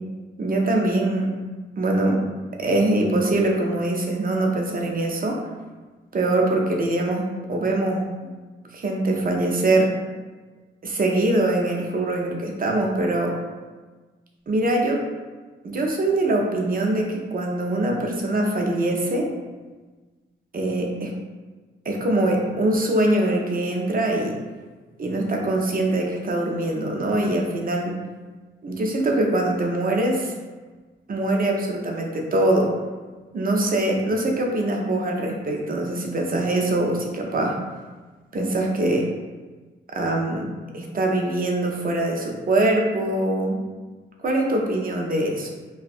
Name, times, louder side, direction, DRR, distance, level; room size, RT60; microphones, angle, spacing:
voice 1, 0.4-1.4 1.8-2.2 2.6-5.4 6.1-8.1 8.7-9.9 10.8-13.4 14.5-15.0 15.6-19.3 20.5-21.1 21.9-24.4 25.0-28.0 28.6-30.3 31.1-32.7 33.3-37.6 38.3-39.1 39.9-40.5 40.7-43.6 44.2-45.5, right 1 dB, 45° right, 0 dB, 0.5 m, -23 dB
3.3 x 2.3 x 2.5 m, 1.3 s
cardioid pair, 85°, 21 cm